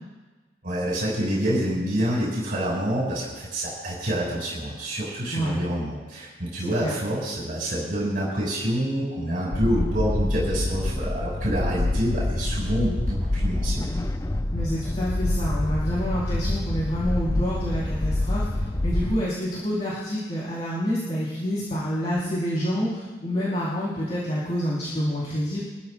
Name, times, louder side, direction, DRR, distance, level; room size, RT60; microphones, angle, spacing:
voice 1, 0.6-13.9, equal, 50° right, -5 dB, 5.8 m, -27 dB
voice 2, 5.3-5.6 6.6-6.9 14.5-18.5 18.8-25.6, equal, 35° left, -8 dB, 4.2 m, -28 dB
sound 1, 9.5-19.1, left 1 dB, 15° left, 0.4 m, -26 dB
25.5 x 14.5 x 2.5 m, 1.3 s
head